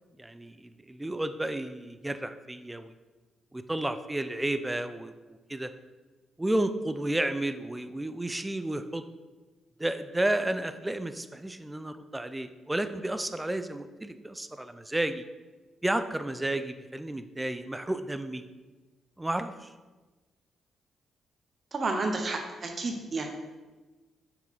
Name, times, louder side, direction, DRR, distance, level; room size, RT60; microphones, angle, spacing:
voice 1, 0.2-2.9 3.5-5.7 6.4-9.0 9.8-15.2 15.8-18.4 19.2-19.7, right 1 dB, 15° right, 10 dB, 0.5 m, -32 dB
voice 2, 21.7-23.3, right 3 dB, 45° right, 3 dB, 1.0 m, -31 dB
5.9 x 4.3 x 4.1 m, 1.2 s
hypercardioid pair, 40°, 0 cm